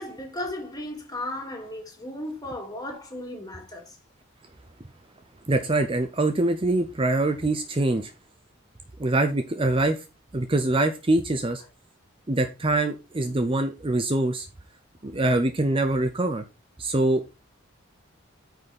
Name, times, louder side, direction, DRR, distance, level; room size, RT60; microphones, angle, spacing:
voice 1, 0.0-4.0, left 1 dB, 20° left, 2.5 m, -35 dB
voice 2, 5.5-8.1 9.0-10.0 10.3-11.6 12.3-14.5 15.0-16.4 16.8-17.4, right 2 dB, 25° right, 0.7 m, -24 dB
9.2 x 5.4 x 4.2 m
head